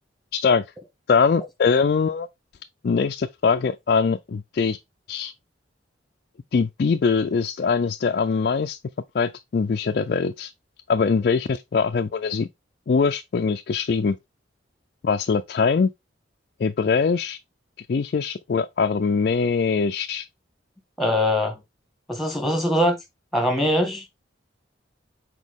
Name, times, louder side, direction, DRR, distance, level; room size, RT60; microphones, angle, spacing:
voice 1, 0.3-0.6 1.1-2.3 2.8-4.8 5.1-5.3 6.5-8.8 9.1-10.5 10.9-12.5 12.9-14.2 15.0-15.9 16.6-17.4 17.8-20.3, left 5 dB, 50° left, 0.3 m, -22 dB
voice 2, 21.0-21.6 22.1-23.0 23.3-24.0, left 1 dB, ahead, 1.5 m, -22 dB
6.3 x 4.4 x 3.5 m
head